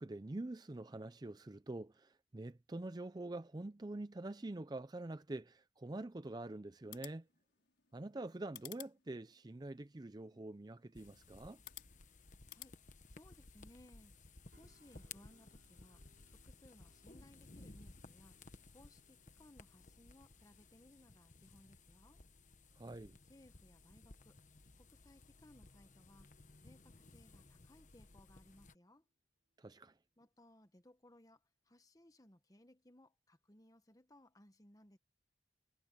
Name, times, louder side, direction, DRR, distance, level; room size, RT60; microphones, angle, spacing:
voice 1, 0.0-7.3 7.9-11.6 22.8-23.2 29.6-30.0, right 2 dB, 25° right, 0.5 m, -46 dB
sound 1, 6.7-12.7, left 13 dB, 90° left, 5.2 m, -57 dB
sound 2, 11.0-28.7, left 3 dB, 45° left, 1.2 m, -59 dB
voice 2, 13.1-16.0 16.3-18.4 18.7-22.2 23.3-24.4 24.8-26.3 26.6-29.0 30.2-35.0, left 1 dB, 20° left, 1.3 m, -64 dB
sound 3, 14.5-28.5 28.9-29.1, right 1 dB, 65° right, 5.8 m, -78 dB
head